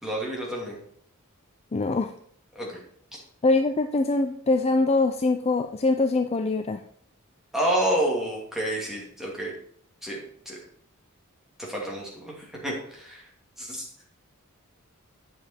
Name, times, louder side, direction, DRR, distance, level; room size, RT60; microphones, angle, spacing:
voice 1, 0.0-0.8 2.5-2.7 7.5-9.5 10.0-10.2 10.5-10.6 11.7-13.2 13.6-13.8, right 1 dB, ahead, -3 dB, 2.6 m, -29 dB
voice 2, 1.7-2.1 3.4-6.8, left 3 dB, 30° left, 7 dB, 0.4 m, -23 dB
9.0 x 7.1 x 4.3 m, 0.63 s
head